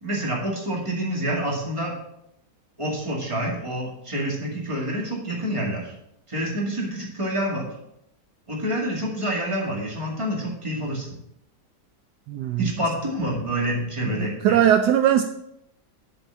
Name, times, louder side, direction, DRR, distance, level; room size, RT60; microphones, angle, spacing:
voice 1, 0.0-1.9 2.8-5.9 6.3-7.7 8.5-11.1 12.6-14.6, right 1 dB, 15° right, -2 dB, 2.2 m, -27 dB
voice 2, 12.3-12.7 14.1-15.2, right 10 dB, 75° right, 8 dB, 1.1 m, -20 dB
7.5 x 5.3 x 7.0 m, 0.79 s
omnidirectional pair, 1.8 m